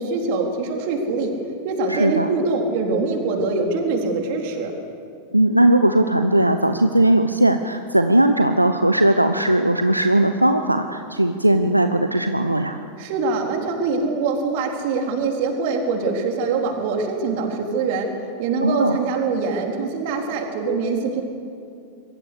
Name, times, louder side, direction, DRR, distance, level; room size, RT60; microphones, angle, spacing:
voice 1, 0.0-1.3 1.6-4.7 13.0-18.1 18.4-21.2, right 4 dB, 50° right, 2 dB, 4.1 m, -23 dB
voice 2, 1.9-2.3 5.3-12.8 18.6-19.0, right 1 dB, 85° right, 8 dB, 0.9 m, -18 dB
26.0 x 22.5 x 6.7 m, 2.5 s
figure-of-eight pair, 90°, 0 cm